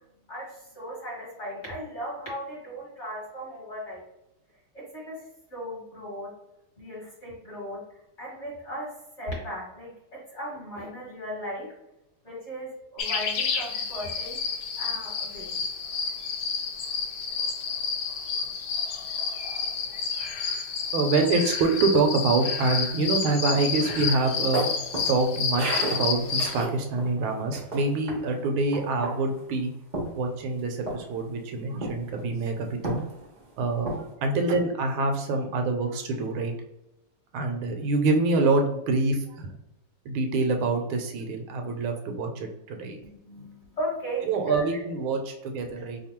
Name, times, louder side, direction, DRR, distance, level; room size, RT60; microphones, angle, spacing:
voice 1, 0.3-4.0 4.7-6.3 6.8-7.8 8.2-11.7 12.2-14.4 14.8-15.6 43.0-44.6 45.5-45.9, equal, 40° left, -5 dB, 1.3 m, -36 dB
sound 1, 13.0-26.6, left 5 dB, 75° left, 0.9 m, -30 dB
voice 2, 20.9-24.7 25.1-29.7 30.1-33.0 33.6-36.5 37.3-39.5 40.0-43.0 43.4-43.5 44.3-46.0, right 3 dB, 80° right, 4 dB, 1.4 m, -26 dB
sound 2, 23.7-27.1 27.5-28.2 28.7-29.4 29.9-30.6 30.9-31.2 31.8-32.2 32.8-33.4 33.8-34.1, right 1 dB, 55° right, 0.5 m, -33 dB
3.4 x 2.2 x 4.3 m, 0.87 s
omnidirectional pair, 2.3 m